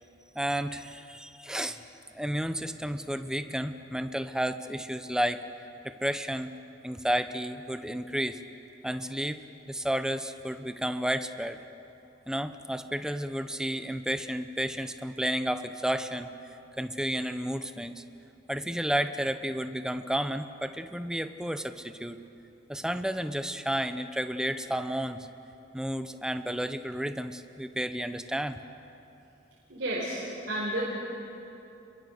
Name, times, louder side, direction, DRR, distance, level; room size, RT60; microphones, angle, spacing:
voice 1, 0.3-1.8 2.1-5.4 5.8-6.6 6.8-8.4 8.8-9.4 9.7-11.6 12.3-16.3 16.8-18.0 18.5-22.2 22.7-25.3 25.7-28.6, equal, 5° right, 9 dB, 0.8 m, -32 dB
voice 2, 29.7-30.8, right 1 dB, 70° right, -6 dB, 4.9 m, -32 dB
30.0 x 22.5 x 6.6 m, 2.9 s
head